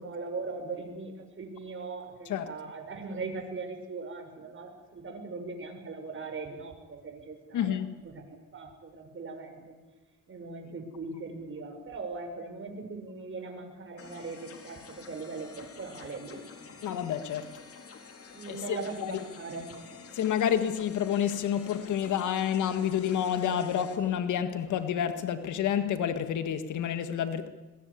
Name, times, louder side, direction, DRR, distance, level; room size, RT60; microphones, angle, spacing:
voice 1, 0.0-7.7 8.1-9.7 10.3-16.8 18.3-19.7, right 3 dB, 40° right, 6.4 m, -40 dB
voice 2, 7.5-8.0 16.8-17.5 18.5-19.2 20.1-27.5, left 9 dB, 75° left, 1.8 m, -29 dB
sound 1, 14.0-24.0, left 5 dB, 50° left, 4.0 m, -49 dB
22.5 x 22.0 x 8.5 m
cardioid pair, 90°, 30 cm